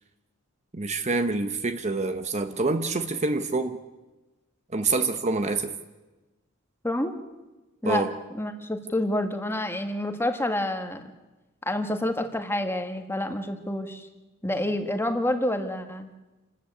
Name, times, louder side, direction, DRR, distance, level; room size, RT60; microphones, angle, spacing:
voice 1, 0.7-3.8 4.7-5.7 7.8-8.1, right 3 dB, 30° right, 1.0 m, -26 dB
voice 2, 6.8-7.2 7.8-11.1 11.6-14.1 14.4-16.1, left 1 dB, 10° left, 1.5 m, -28 dB
28.5 x 13.5 x 8.6 m
head